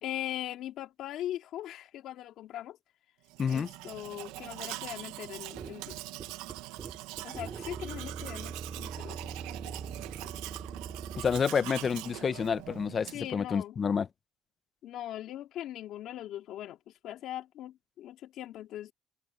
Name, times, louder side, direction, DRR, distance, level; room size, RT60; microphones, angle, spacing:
voice 1, 0.0-2.8 3.5-6.0 7.2-9.4 9.6-9.8 10.2-10.3 13.1-13.7 14.8-16.8 17.0-18.9, left 12 dB, 65° left, 2.5 m, -40 dB
Domestic sounds home sounds, 3.3-13.4, right 18 dB, 90° right, 1.3 m, -43 dB
sound 1, 5.5-11.5, right 5 dB, 30° right, 3.3 m, -42 dB
voice 2, 11.2-14.1, left 6 dB, 35° left, 0.8 m, -29 dB
cardioid pair, 120°, 0 cm